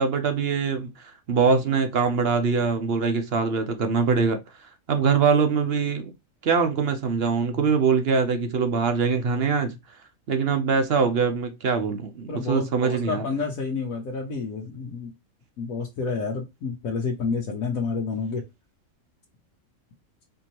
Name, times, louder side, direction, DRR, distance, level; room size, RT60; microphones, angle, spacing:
voice 1, 0.0-4.4 4.9-6.1 6.4-9.8 10.3-13.2, right 5 dB, 55° right, 0.8 m, -23 dB
voice 2, 12.3-15.1 15.6-18.4, left 4 dB, 80° left, 1.3 m, -29 dB
4.5 x 2.8 x 2.9 m
omnidirectional pair, 1.5 m